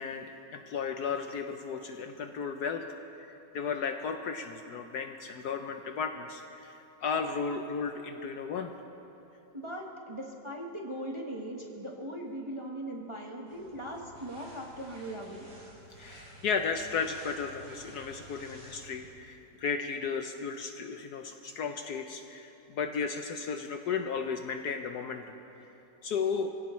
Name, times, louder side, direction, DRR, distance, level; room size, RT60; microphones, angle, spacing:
voice 1, 0.0-2.8 3.2-8.7 15.9-25.4 26.0-26.5, left 5 dB, 65° left, 6 dB, 1.1 m, -34 dB
voice 2, 9.5-15.5, right 1 dB, 20° right, -1 dB, 1.1 m, -39 dB
sound 1, 13.5-19.1, right 1 dB, 85° right, 4.5 m, -52 dB
24.5 x 16.5 x 3.1 m, 2.9 s
omnidirectional pair, 2.0 m